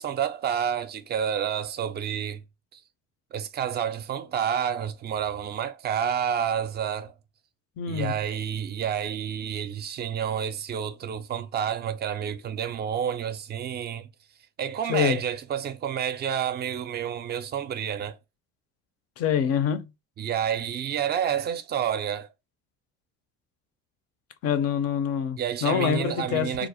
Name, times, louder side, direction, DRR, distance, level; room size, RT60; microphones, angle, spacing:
voice 1, 0.0-2.4 2.7-2.8 3.3-7.1 7.9-14.1 14.6-18.2 20.2-22.3 25.4-26.7, right 8 dB, 35° right, 0.4 m, -29 dB
voice 2, 7.8-8.1 14.9-15.2 19.2-19.9 24.4-26.7, left 8 dB, 50° left, 0.5 m, -26 dB
2.4 x 2.0 x 2.8 m
supercardioid pair, 100°, 31 cm